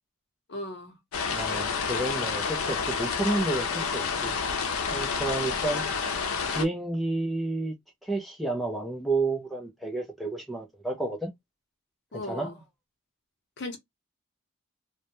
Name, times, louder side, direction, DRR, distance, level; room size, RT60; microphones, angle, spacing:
voice 1, 0.5-1.0 12.1-12.6 13.6-13.8, left 1 dB, 55° left, 0.7 m, -37 dB
sound 1, 1.1-6.6, left 5 dB, 90° left, 0.5 m, -29 dB
voice 2, 1.3-4.4 4.9-5.8 6.5-7.7 8.0-11.3 12.1-12.5, right 2 dB, ahead, 0.3 m, -30 dB
2.1 x 2.1 x 2.9 m
head